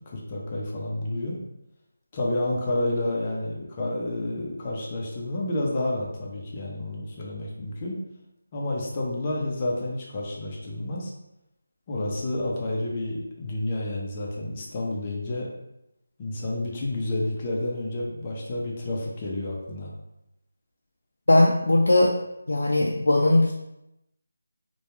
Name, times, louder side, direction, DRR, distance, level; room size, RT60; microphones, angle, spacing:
voice 1, 0.1-1.4 2.1-8.0 8.5-11.1 11.9-15.5 16.2-19.9, left 1 dB, 25° left, -3 dB, 0.4 m, -30 dB
voice 2, 21.3-22.1 22.5-23.5, left 1 dB, 85° left, -1 dB, 0.3 m, -19 dB
2.2 x 2.1 x 3.0 m, 0.88 s
figure-of-eight pair, 170°, 0 cm